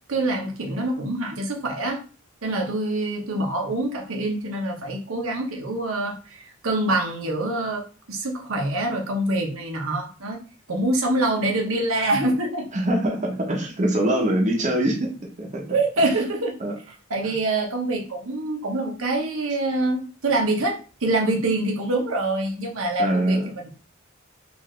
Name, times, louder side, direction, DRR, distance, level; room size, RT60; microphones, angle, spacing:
voice 1, 0.1-2.0 2.4-6.4 6.6-10.4 10.7-12.7 15.7-16.6 17.1-23.7, right 2 dB, 85° right, 1 dB, 0.9 m, -25 dB
voice 2, 12.7-15.6 16.6-16.8 17.2-17.3 23.0-23.5, right 1 dB, 35° right, 0 dB, 0.8 m, -23 dB
4.0 x 2.6 x 3.2 m, 0.36 s
head